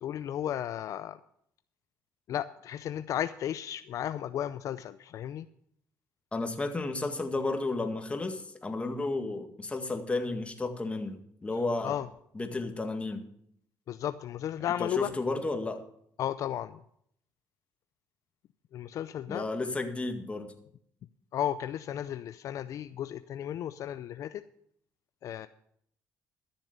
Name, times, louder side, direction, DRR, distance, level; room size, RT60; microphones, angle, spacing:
voice 1, 0.0-1.2 2.3-5.5 11.8-12.1 13.9-15.1 16.2-16.8 18.7-19.4 21.3-24.4 25.2-25.5, left 10 dB, 60° left, 12 dB, 0.5 m, -34 dB
voice 2, 6.3-12.0 12.4-13.3 14.8-15.8 19.3-20.5, left 2 dB, 20° left, 5 dB, 1.9 m, -32 dB
13.5 x 7.1 x 6.7 m, 0.69 s
cardioid pair, 90°, 6 cm